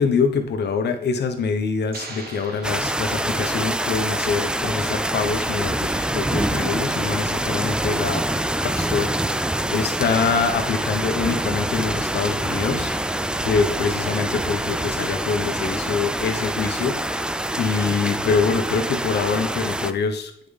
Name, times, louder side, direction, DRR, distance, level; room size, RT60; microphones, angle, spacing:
voice 1, 0.0-8.2 8.6-9.1 9.7-13.0 13.4-17.3 17.6-20.5, left 5 dB, 60° left, 6 dB, 1.1 m, -24 dB
sound 1, 1.9-3.8, right 3 dB, 50° right, 1.3 m, -40 dB
sound 2, 2.6-19.9, right 1 dB, 5° right, 0.3 m, -25 dB
7.7 x 5.2 x 3.4 m, 0.70 s
cardioid pair, 90°, 20 cm